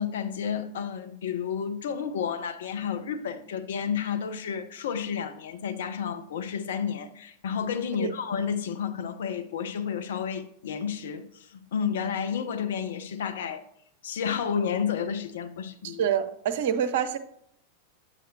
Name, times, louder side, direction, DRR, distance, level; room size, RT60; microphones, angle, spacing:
voice 1, 0.0-13.6 14.0-16.1, left 7 dB, 60° left, 0.7 m, -31 dB
voice 2, 15.8-17.2, right 8 dB, 55° right, 0.6 m, -26 dB
8.7 x 7.8 x 2.7 m
figure-of-eight pair, 90°, 0 cm